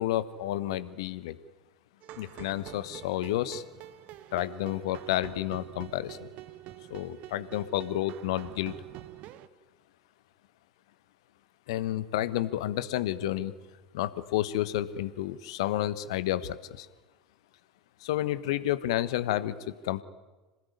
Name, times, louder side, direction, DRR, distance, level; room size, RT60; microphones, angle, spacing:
voice 1, 0.0-1.4 2.2-3.6 4.3-6.3 6.9-8.7 11.7-13.5 13.9-16.9 18.0-20.0, left 13 dB, 60° left, 15 dB, 1.2 m, -30 dB
sound 1, 2.0-9.5, right 14 dB, 45° right, 1.2 m, -46 dB
26.5 x 19.5 x 9.8 m, 1.2 s
figure-of-eight pair, 80°, 3 cm